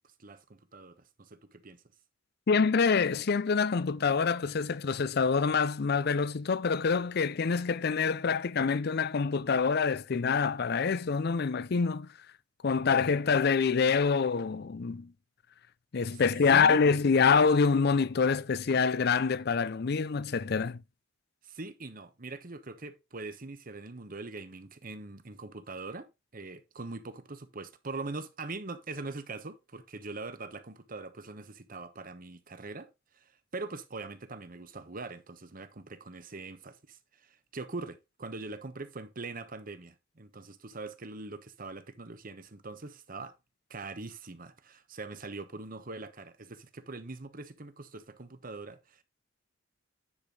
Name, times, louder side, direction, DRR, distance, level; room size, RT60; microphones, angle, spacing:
voice 1, 0.2-1.8 16.1-16.2 16.5-16.8 21.4-26.1 26.3-32.9 33.5-43.4 43.7-49.0, right 3 dB, 45° right, 1.1 m, -42 dB
voice 2, 2.5-12.1 12.6-15.1 15.9-20.8, left 5 dB, 55° left, 0.5 m, -26 dB
9.8 x 5.1 x 3.8 m
head